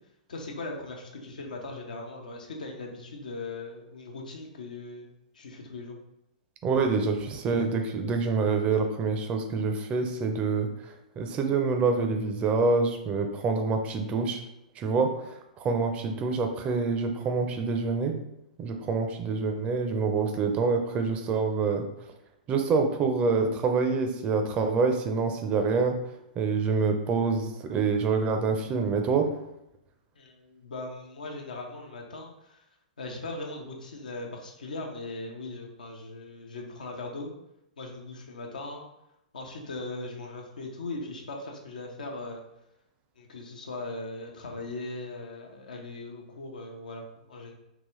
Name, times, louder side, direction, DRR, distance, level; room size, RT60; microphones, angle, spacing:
voice 1, 0.3-5.1 5.3-6.0 30.2-32.6 33.0-37.3 37.8-38.8 39.3-42.4 43.2-47.5, left 2 dB, 75° left, 1 dB, 0.7 m, -39 dB
voice 2, 6.6-10.7 11.2-14.4 14.8-15.1 15.6-18.2 18.6-21.9 22.5-26.0 26.4-29.3, right 4 dB, 30° right, 5 dB, 0.5 m, -26 dB
3.9 x 2.3 x 3.1 m, 0.84 s
hypercardioid pair, 115°, 4 cm